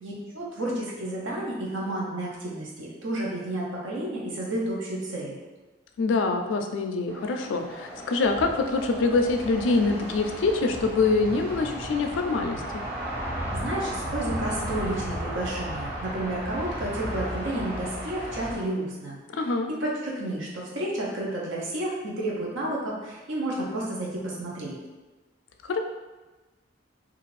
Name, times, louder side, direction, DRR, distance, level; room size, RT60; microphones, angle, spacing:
voice 1, 0.0-5.4 13.5-19.2 19.7-24.8, right 1 dB, 75° right, -4 dB, 0.6 m, -31 dB
voice 2, 6.0-12.8 19.3-19.7 25.7-25.8, left 3 dB, 75° left, 5 dB, 0.3 m, -25 dB
sound 1, 7.1-18.6, equal, 15° right, 1.3 m, -35 dB
2.5 x 2.4 x 3.1 m, 1.2 s
head